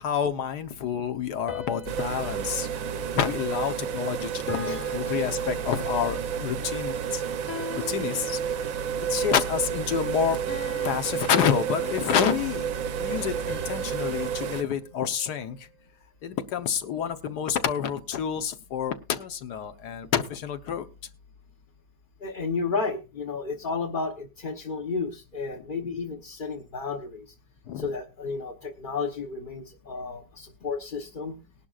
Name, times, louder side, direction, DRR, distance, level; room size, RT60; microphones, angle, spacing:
voice 1, 0.0-2.7 3.1-7.2 7.9-8.4 9.1-10.4 10.8-12.7 13.0-15.6 16.2-20.9 27.7-27.9, left 8 dB, 65° left, 8 dB, 1.5 m, -28 dB
sound 1, 1.5-4.0 4.5-6.2 7.5-9.0 10.5-12.3 13.5-15.8, left 2 dB, 10° left, 1.0 m, -43 dB
sound 2, 1.9-14.6, right 7 dB, 60° right, 1.0 m, -31 dB
voice 2, 4.6-5.1 22.2-27.3 27.8-31.4, left 4 dB, 35° left, 1 dB, 0.9 m, -32 dB
19.5 x 11.5 x 2.4 m, 0.29 s
omnidirectional pair, 2.0 m